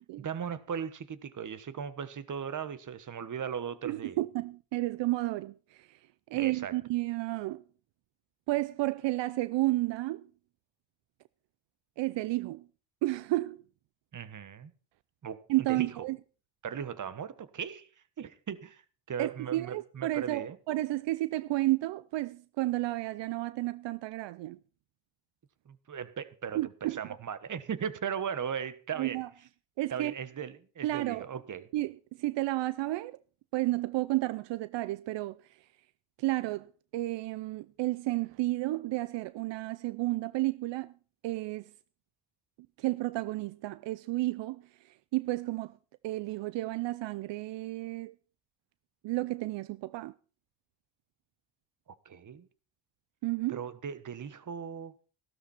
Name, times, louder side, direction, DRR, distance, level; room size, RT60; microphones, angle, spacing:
voice 1, 0.2-4.2 6.3-6.8 14.1-14.7 15.2-16.0 16.6-17.9 18.2-18.8 19.1-20.6 25.6-29.2 29.9-31.7 52.0-52.5 53.5-54.9, right 7 dB, 45° right, 1.4 m, -38 dB
voice 2, 3.8-6.0 6.3-7.6 8.5-10.3 12.0-12.6 13.0-13.6 15.5-16.2 19.2-24.6 26.6-27.0 28.9-29.3 29.8-30.1 30.8-31.3 31.7-33.2 33.5-35.4 36.2-40.9 41.2-41.7 42.8-45.8 46.0-48.1 49.0-50.1 53.2-53.6, right 18 dB, 75° right, 0.6 m, -32 dB
14.5 x 12.5 x 4.4 m
cardioid pair, 90°, 43 cm